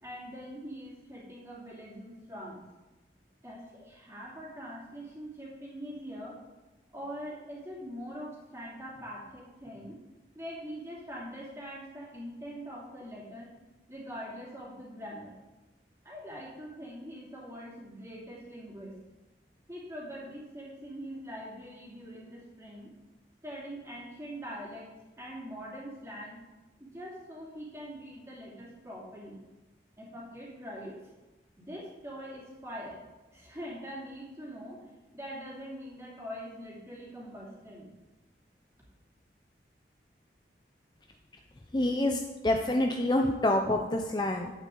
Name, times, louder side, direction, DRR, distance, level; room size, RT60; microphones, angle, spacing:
voice 1, 0.0-2.6 3.4-6.4 6.9-10.0 10.3-13.5 13.9-15.4 16.0-18.9 19.7-22.9 23.4-24.9 25.2-26.4 26.8-29.4 30.0-31.0 31.6-33.0 33.3-37.9, equal, 15° right, -5 dB, 2.7 m, -43 dB
voice 2, 41.7-44.5, left 1 dB, 25° left, 3 dB, 0.5 m, -27 dB
11.0 x 8.4 x 3.9 m, 1.1 s
head